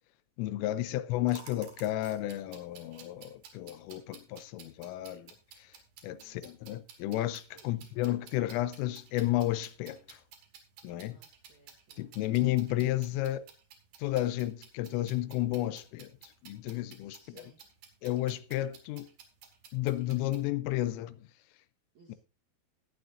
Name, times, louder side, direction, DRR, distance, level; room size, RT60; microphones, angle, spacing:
voice 1, 0.4-5.3 6.0-10.2 10.8-11.2 12.0-13.4 14.0-16.1 16.4-17.5 18.0-19.1 19.7-21.2, left 15 dB, 85° left, 3.3 m, -32 dB
sound 1, 1.3-20.5, right 7 dB, 60° right, 3.2 m, -54 dB
voice 2, 6.1-6.4 7.5-7.8 11.0-12.1 17.0-17.6 21.9-22.1, right 4 dB, 75° right, 1.7 m, -62 dB
18.0 x 9.5 x 2.6 m
omnidirectional pair, 5.8 m